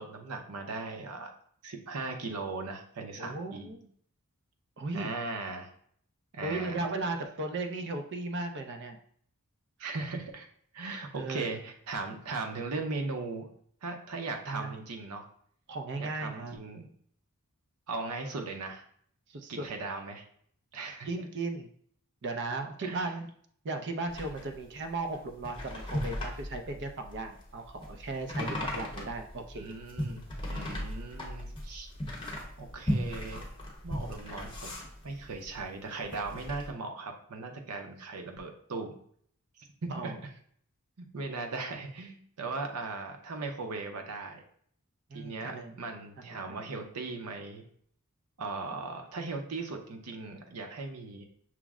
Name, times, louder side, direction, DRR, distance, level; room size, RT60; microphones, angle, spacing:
voice 1, 0.0-1.3 1.6-3.7 4.9-5.7 6.3-6.8 9.8-10.5 10.7-13.5 13.8-15.3 16.0-16.9 17.9-18.9 19.5-20.2 20.7-21.2 22.8-23.1 29.6-31.9 32.6-33.5 33.8-34.7 35.0-39.0 39.8-40.2 41.0-44.4 45.1-47.6 48.4-51.2, right 3 dB, 90° right, 4 dB, 0.7 m, -38 dB
voice 2, 3.2-3.9 4.8-5.2 6.4-9.0 11.1-11.5 14.5-14.8 15.7-16.6 19.3-19.6 21.0-21.7 22.2-23.3 23.6-29.7 39.9-40.2 45.1-45.7 46.2-46.7, right 2 dB, 50° right, 6 dB, 0.5 m, -36 dB
sound 1, 24.1-35.6 36.0-36.7, equal, 25° left, 0.8 m, -37 dB
6.0 x 2.0 x 3.5 m, 0.62 s
head